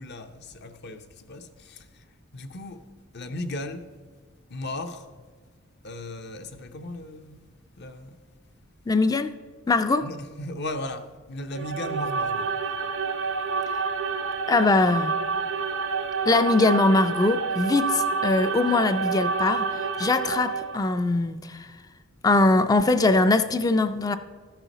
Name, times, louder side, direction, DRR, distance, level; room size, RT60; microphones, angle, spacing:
voice 1, 0.0-2.1 2.3-2.8 3.1-3.9 4.5-5.1 5.8-7.4 7.8-8.2 10.0-12.5, left 1 dB, 55° left, 0.7 m, -36 dB
voice 2, 8.9-9.3 9.7-10.1 14.5-15.2 16.3-21.7 22.2-24.2, left 2 dB, 20° left, 0.3 m, -22 dB
sound 1, 11.5-21.0, right 5 dB, 60° right, 0.5 m, -28 dB
13.5 x 5.6 x 4.0 m
head